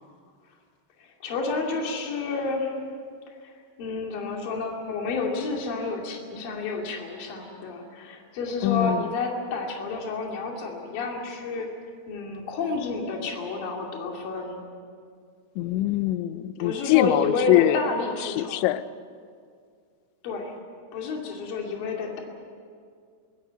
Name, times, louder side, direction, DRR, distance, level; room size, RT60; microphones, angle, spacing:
voice 1, 1.0-2.8 3.3-3.5 3.8-11.7 12.1-14.6 16.6-18.7 20.2-20.5 20.9-22.2, left 3 dB, 55° left, 0 dB, 4.1 m, -30 dB
voice 2, 8.6-9.1 15.6-17.9 18.2-18.8, left 14 dB, 85° left, 14 dB, 3.0 m, -23 dB
23.5 x 16.5 x 8.9 m, 2.2 s
omnidirectional pair, 5.2 m